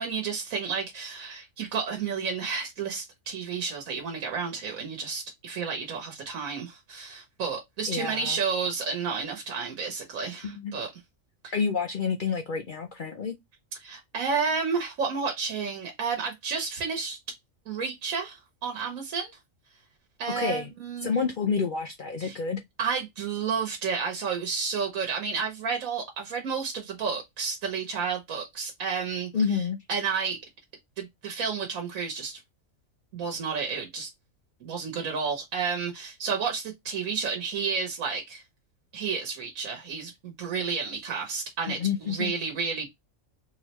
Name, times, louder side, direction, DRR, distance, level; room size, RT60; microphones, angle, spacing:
voice 1, 0.0-10.9 11.4-11.5 13.8-17.2 17.7-19.3 20.2-21.1 22.2-22.4 22.8-29.3 29.9-30.4 31.0-32.4 33.1-34.1 34.6-38.4 38.9-42.9, right 5 dB, 90° right, 1.4 m, -31 dB
voice 2, 7.9-8.4 10.4-10.7 11.5-13.4 20.3-20.7 21.0-22.6 29.3-29.8 41.7-42.3, left 5 dB, 60° left, 0.5 m, -29 dB
3.7 x 3.1 x 2.9 m
omnidirectional pair, 1.4 m